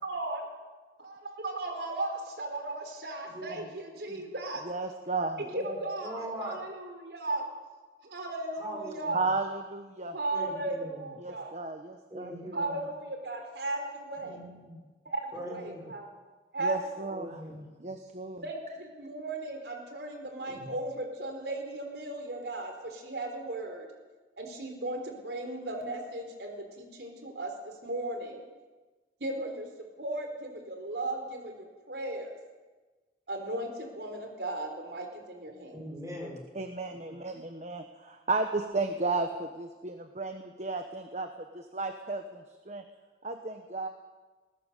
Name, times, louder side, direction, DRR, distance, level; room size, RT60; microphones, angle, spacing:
voice 1, 0.0-0.4 1.0-4.7 5.5-7.4 8.0-9.2 10.1-11.5 12.5-14.4 15.0-16.1 16.5-16.7 18.4-23.9 24.4-27.5 27.8-28.4 29.2-29.7 30.0-31.5 31.9-32.4 33.3-35.8, right 2 dB, 70° right, 4 dB, 4.2 m, -36 dB
voice 2, 3.3-3.6 4.1-4.2 5.4-6.6 8.6-9.2 10.3-11.1 12.1-12.9 14.2-14.8 15.3-15.9 17.1-17.6 20.5-20.7 35.7-36.4, equal, 20° right, -1 dB, 5.4 m, -41 dB
voice 3, 4.6-5.4 9.1-10.2 11.2-12.4 12.7-12.8 16.6-17.4 17.8-18.4 36.5-41.3 41.5-42.8 43.2-43.9, right 3 dB, 40° right, 6 dB, 1.3 m, -34 dB
20.5 x 19.5 x 6.8 m, 1.3 s
head